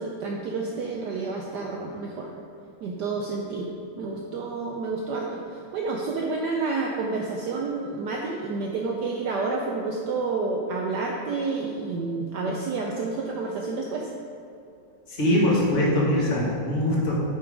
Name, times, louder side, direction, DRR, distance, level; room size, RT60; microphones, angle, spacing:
voice 1, 0.0-2.3 2.8-3.7 4.0-14.1, right 3 dB, 75° right, 0 dB, 0.9 m, -29 dB
voice 2, 15.1-17.1, left 1 dB, 35° left, -6 dB, 1.8 m, -22 dB
7.0 x 5.5 x 4.9 m, 2.6 s
omnidirectional pair, 2.4 m